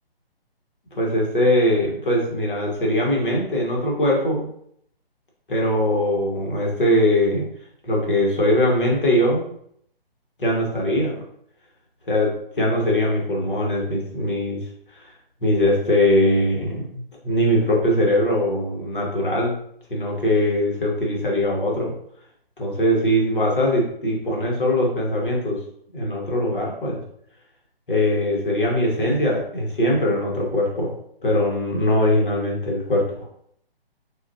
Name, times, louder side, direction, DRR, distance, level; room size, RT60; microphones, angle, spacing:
voice 1, 0.9-4.5 5.5-7.4 7.8-9.4 10.4-11.2 12.1-14.6 14.9-15.1 15.4-19.6 19.9-21.9 22.6-25.6 25.9-27.0 27.9-30.9 31.2-33.3, left 1 dB, 60° left, -2 dB, 1.6 m, -21 dB
4.9 x 2.8 x 2.8 m, 0.69 s
figure-of-eight pair, 140°, 30 cm